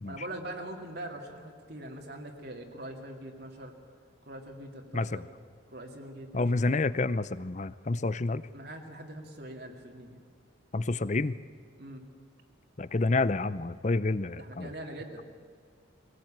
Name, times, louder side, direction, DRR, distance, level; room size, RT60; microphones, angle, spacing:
voice 1, 0.1-3.8 4.2-5.2 5.7-7.1 8.5-10.2 11.8-12.0 14.4-15.2, right 1 dB, 50° right, 2 dB, 2.5 m, -42 dB
voice 2, 6.3-8.4 10.7-11.4 12.8-14.7, left 3 dB, 35° left, 16 dB, 0.6 m, -29 dB
23.0 x 18.5 x 8.9 m, 2.1 s
head